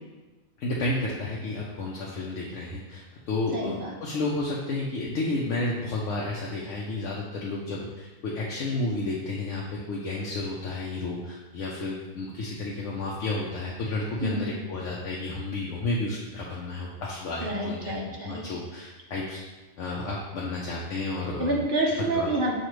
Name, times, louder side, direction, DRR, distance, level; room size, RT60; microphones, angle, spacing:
voice 1, 0.6-17.9 18.2-19.4 19.8-21.6 22.1-22.3, left 2 dB, 75° left, -4 dB, 0.9 m, -31 dB
voice 2, 3.5-3.9 14.2-14.5 17.4-18.4 21.4-22.5, right 2 dB, 50° right, -2 dB, 0.7 m, -28 dB
6.5 x 2.4 x 3.0 m, 1.2 s
omnidirectional pair, 1.4 m